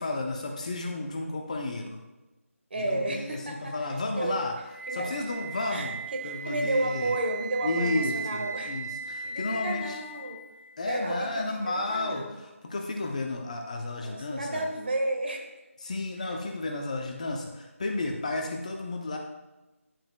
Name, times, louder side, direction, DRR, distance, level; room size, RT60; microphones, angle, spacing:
voice 1, 0.0-2.0 2.8-4.5 4.9-7.1 7.6-10.0 10.8-14.7 15.8-19.2, left 2 dB, 30° left, 2 dB, 0.7 m, -32 dB
voice 2, 2.7-3.9 4.2-4.4 4.9-5.2 5.7-8.8 9.2-10.4 10.8-12.3 14.0-15.5, right 2 dB, 45° right, 3 dB, 1.4 m, -32 dB
Wind instrument woodwind instrument, 4.7-10.7, right 4 dB, 50° left, 1.5 m, -37 dB
11.0 x 7.5 x 2.2 m, 1.1 s
figure-of-eight pair, 170°, 8 cm